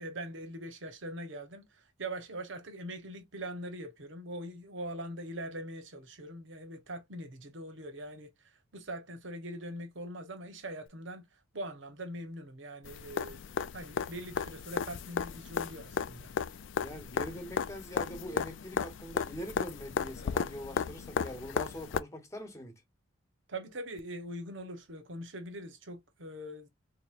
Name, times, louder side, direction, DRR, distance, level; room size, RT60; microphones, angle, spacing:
voice 1, 0.0-8.3 8.7-11.2 11.5-13.5 13.7-16.3 23.5-26.7, right 1 dB, 70° right, 1.1 m, -42 dB
sound 1, 12.8-22.0 24.0-24.1, left 6 dB, 65° left, 0.4 m, -35 dB
voice 2, 16.8-22.7, equal, 15° left, 1.1 m, -43 dB
4.0 x 3.0 x 2.5 m
head